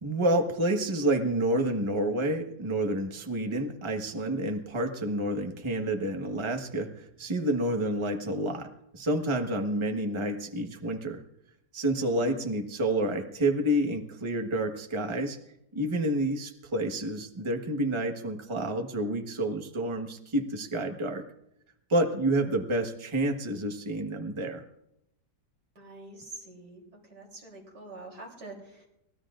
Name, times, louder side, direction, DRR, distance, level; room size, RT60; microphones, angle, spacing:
voice 1, 0.0-11.2 11.7-15.4 15.7-21.2 21.9-24.6, right 1 dB, 20° right, 3 dB, 1.3 m, -29 dB
voice 2, 12.0-12.4 25.8-26.8 27.1-28.9, right 2 dB, 85° right, -1 dB, 4.2 m, -46 dB
24.0 x 19.0 x 2.5 m, 0.82 s
omnidirectional pair, 1.8 m